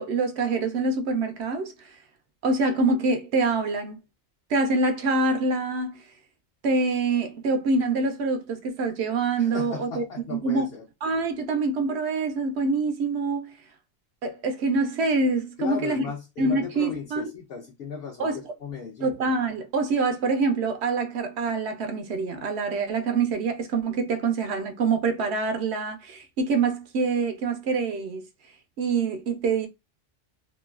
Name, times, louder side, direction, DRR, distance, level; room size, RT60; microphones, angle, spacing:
voice 1, 0.0-2.0 2.4-4.0 4.5-6.0 6.6-10.0 10.3-10.7 11.0-13.6 14.2-16.0 16.4-17.3 18.2-18.5 19.0-28.2 28.8-29.7, right 3 dB, 65° right, 0.8 m, -25 dB
voice 2, 9.4-10.8 15.6-18.3 18.6-19.1, left 6 dB, 55° left, 1.0 m, -36 dB
2.9 x 2.4 x 2.3 m
omnidirectional pair, 1.3 m